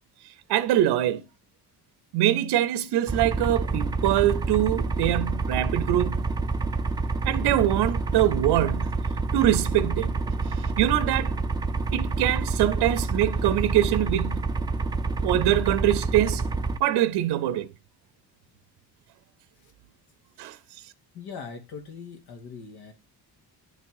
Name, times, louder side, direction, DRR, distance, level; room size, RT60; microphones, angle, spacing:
voice 1, 0.2-1.2 2.1-6.3 7.2-9.0 9.3-11.4 11.9-14.5 15.2-16.4 16.8-17.7 20.4-20.9, right 13 dB, 80° right, 0.6 m, -24 dB
sound 1, 3.1-16.8, right 3 dB, 10° right, 0.4 m, -28 dB
voice 2, 21.1-22.9, left 5 dB, 75° left, 2.0 m, -40 dB
10.5 x 3.6 x 4.7 m
cardioid pair, 160°, 39 cm